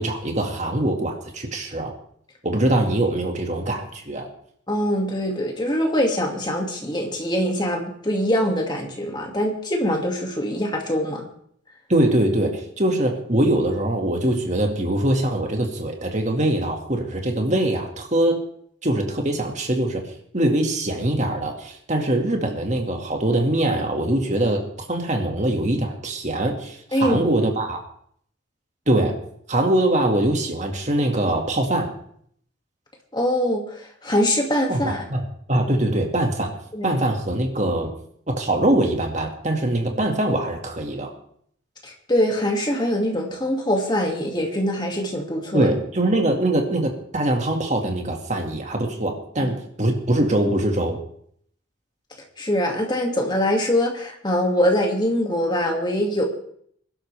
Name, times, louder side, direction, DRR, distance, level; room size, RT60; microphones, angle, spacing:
voice 1, 0.0-1.9 2.4-4.3 11.9-18.4 18.8-24.6 24.9-27.8 28.9-29.2 29.5-31.9 34.7-36.6 36.8-37.9 38.3-41.1 45.5-51.0, right 1 dB, 35° right, 3 dB, 2.1 m, -23 dB
voice 2, 4.7-11.2 26.9-27.4 33.1-35.0 36.7-36.9 41.8-45.7 49.4-49.5 52.4-56.2, equal, 20° left, 1 dB, 2.3 m, -23 dB
22.0 x 12.0 x 3.5 m, 0.64 s
head